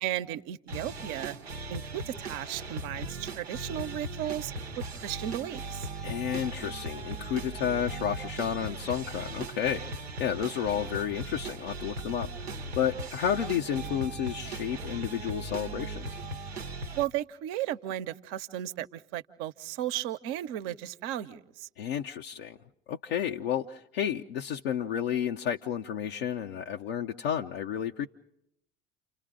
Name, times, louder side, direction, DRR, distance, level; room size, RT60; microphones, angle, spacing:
voice 1, 0.0-1.4 1.7-5.9 17.0-21.7, right 12 dB, 60° right, 10 dB, 1.0 m, -35 dB
sound 1, 0.7-17.0, right 2 dB, 90° right, 0.9 m, -38 dB
voice 2, 6.0-16.1 21.8-22.6 22.9-28.1, left 9 dB, 75° left, 1 dB, 0.8 m, -31 dB
29.5 x 27.5 x 3.8 m, 0.78 s
figure-of-eight pair, 60°, 31 cm